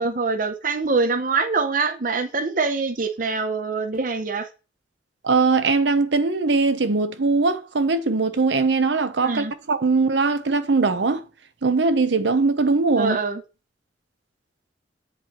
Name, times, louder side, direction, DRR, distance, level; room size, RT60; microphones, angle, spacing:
voice 1, 0.0-4.5 9.2-9.5 13.0-13.4, right 4 dB, 45° right, 0.7 m, -24 dB
voice 2, 5.2-11.2 11.6-13.2, right 3 dB, 75° right, 0.8 m, -21 dB
8.0 x 4.5 x 3.0 m
head